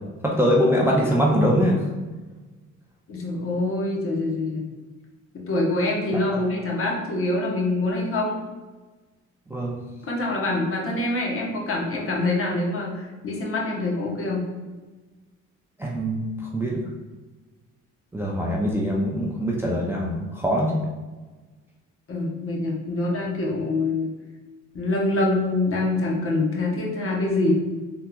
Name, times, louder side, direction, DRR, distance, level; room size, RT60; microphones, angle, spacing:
voice 1, 0.2-1.8 9.5-9.8 15.8-16.9 18.1-20.7, equal, 10° right, -3 dB, 0.4 m, -23 dB
voice 2, 3.1-4.6 5.3-8.4 10.1-14.4 22.1-24.1 24.7-27.5, left 2 dB, 45° left, -2 dB, 0.9 m, -25 dB
3.6 x 2.9 x 2.2 m, 1.3 s
cardioid pair, 90°, 30 cm